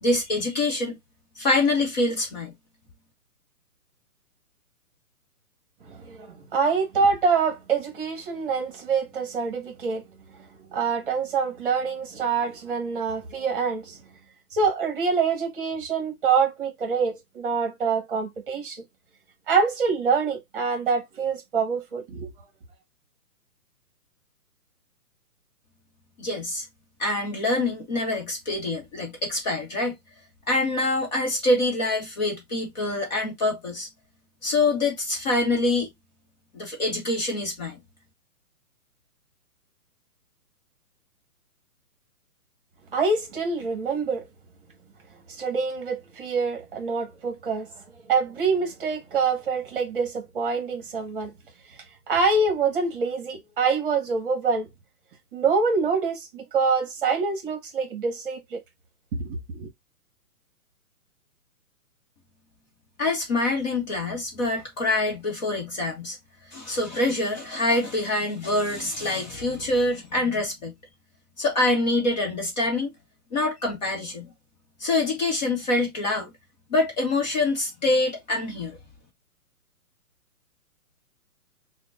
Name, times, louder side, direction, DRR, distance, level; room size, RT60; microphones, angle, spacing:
voice 1, 0.0-1.0 1.4-2.5 26.2-26.6 27.0-29.9 30.5-33.9 34.4-35.9 36.5-37.8 63.0-66.2 66.5-70.7 71.4-72.9 73.3-74.3 74.8-76.3 76.7-78.8, left 2 dB, 30° left, 0.9 m, -25 dB
voice 2, 5.9-10.0 10.7-14.0 14.5-18.8 19.5-22.3 42.9-44.2 45.3-47.7 48.1-51.3 52.1-54.7 55.3-58.6 59.2-59.7, right 5 dB, 35° right, 1.2 m, -25 dB
5.9 x 2.2 x 2.3 m
hypercardioid pair, 160°, 45 cm